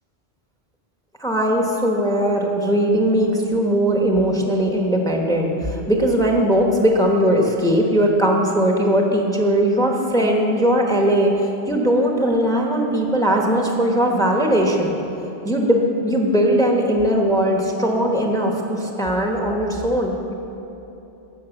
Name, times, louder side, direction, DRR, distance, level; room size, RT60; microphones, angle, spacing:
voice 1, 1.2-14.9 15.4-20.3, equal, 5° left, 1 dB, 1.1 m, -19 dB
12.5 x 6.5 x 8.1 m, 3.0 s
omnidirectional pair, 1.2 m